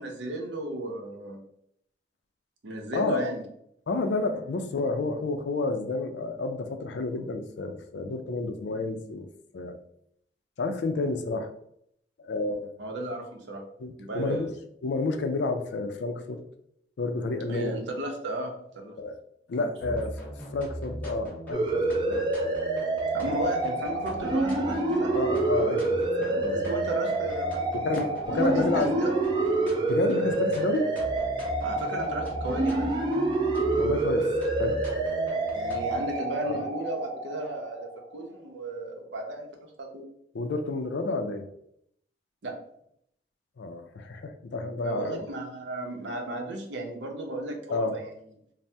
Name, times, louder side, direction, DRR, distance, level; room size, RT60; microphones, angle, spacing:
voice 1, 0.0-1.4 2.6-3.4 12.8-13.6 14.0-14.5 17.5-18.9 19.6-19.7 23.1-25.1 26.3-27.6 28.0-29.1 31.6-32.9 35.5-40.0 42.4-42.5 44.8-48.1, right 2 dB, 90° right, 2 dB, 0.6 m, -34 dB
voice 2, 3.9-9.3 9.5-9.7 10.6-11.5 12.2-12.7 13.8-14.5 14.8-16.4 17.0-17.8 19.0-19.2 19.5-20.1 20.5-22.3 23.3-23.4 25.1-26.6 27.7-28.9 29.9-30.9 33.8-34.8 36.4-36.6 40.3-41.5 43.6-45.2 47.7-48.0, left 3 dB, 80° left, 7 dB, 0.4 m, -30 dB
sound 1, 19.8-36.1, right 1 dB, 10° left, 0.6 m, -40 dB
sound 2, 21.5-37.9, right 2 dB, 25° right, 0.3 m, -28 dB
2.7 x 2.0 x 3.3 m, 0.72 s
head